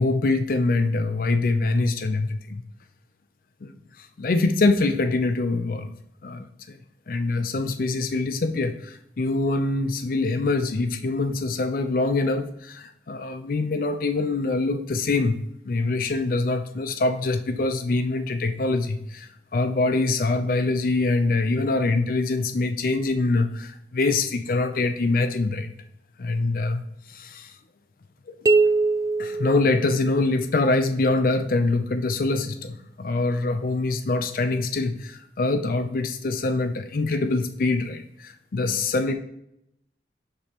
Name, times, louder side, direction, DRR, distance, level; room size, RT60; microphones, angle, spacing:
voice 1, 0.0-2.6 3.6-5.9 6.2-6.8 7.1-25.7 26.2-27.5 28.3-28.4 29.2-39.1, left 3 dB, 50° left, 8 dB, 0.4 m, -24 dB
sound 1, 28.5-30.4, right 3 dB, 20° right, 0.3 m, -22 dB
6.6 x 5.3 x 2.9 m, 0.77 s
head